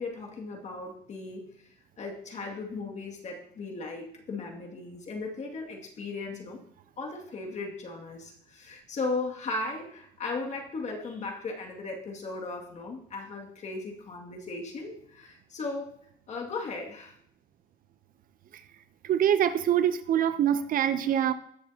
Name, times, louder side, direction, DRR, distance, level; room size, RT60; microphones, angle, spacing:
voice 1, 0.0-6.6 7.0-16.0 16.3-17.2, left 3 dB, 45° left, 2.2 m, -37 dB
voice 2, 19.1-21.3, right 10 dB, 55° right, 0.7 m, -24 dB
18.5 x 6.8 x 2.9 m
cardioid pair, 110°, 17 cm